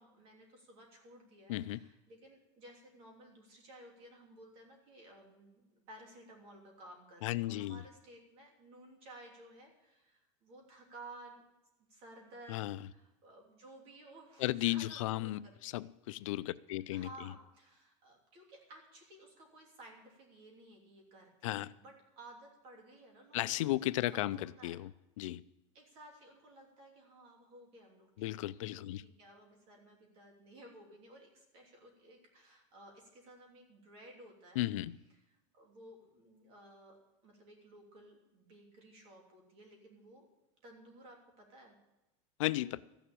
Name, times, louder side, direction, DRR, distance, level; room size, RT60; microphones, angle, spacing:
voice 1, 0.0-11.4 11.9-15.8 16.9-23.7 24.4-24.8 25.7-34.6 35.1-37.0 37.2-40.3 40.6-41.8, right 1 dB, 35° right, 3.1 m, -56 dB
voice 2, 1.5-1.8 7.2-7.8 12.5-12.8 14.4-17.1 21.4-21.7 23.3-24.9 25.2-25.4 28.2-29.0 34.6-35.0 42.4-42.8, left 16 dB, 80° left, 0.5 m, -35 dB
14.0 x 7.1 x 8.6 m
supercardioid pair, 170°, 16 cm